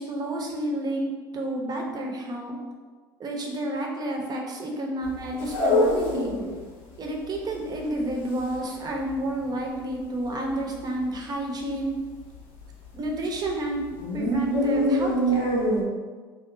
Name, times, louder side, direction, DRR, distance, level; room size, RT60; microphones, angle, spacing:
voice 1, 0.0-2.6 3.2-6.3 7.0-11.9 12.9-13.8 14.1-15.6, right 1 dB, 35° right, 1 dB, 0.7 m, -30 dB
sound 1, 5.0-6.6 6.9-7.0 7.2-9.5 9.8-10.0 10.3-10.9 11.2-11.3 11.7-11.8 12.2-13.5 13.8-15.8, equal, 60° left, 0.6 m, -25 dB
2.6 x 2.1 x 3.7 m, 1.4 s
hypercardioid pair, 65°, 12 cm